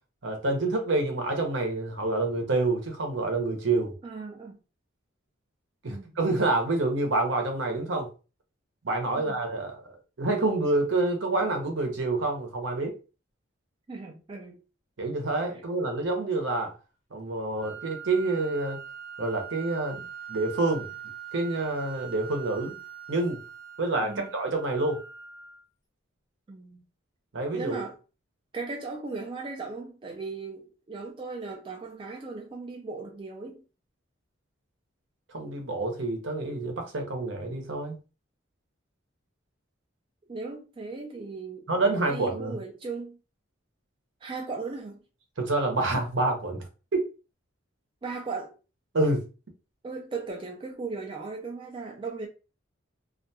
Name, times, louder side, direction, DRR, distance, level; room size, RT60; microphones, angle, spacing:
voice 1, 0.2-3.9 5.8-8.1 8.8-13.0 15.0-16.7 17.1-18.8 19.2-20.0 20.3-20.9 21.3-22.8 23.1-23.4 23.8-25.0 27.3-27.8 35.3-38.0 41.7-42.6 45.4-46.6 46.9-47.0 48.9-49.2, right 2 dB, 65° right, 0.7 m, -27 dB
voice 2, 4.0-4.6 5.9-6.2 9.1-9.4 13.9-14.6 24.0-24.3 26.5-26.8 27.5-28.0 28.5-33.6 40.3-41.7 42.1-43.2 44.2-45.0 48.0-48.5 49.8-52.3, right 4 dB, 25° right, 0.3 m, -37 dB
sound 1, 17.6-25.6, right 9 dB, 90° left, 0.9 m, -42 dB
2.4 x 2.2 x 2.7 m
head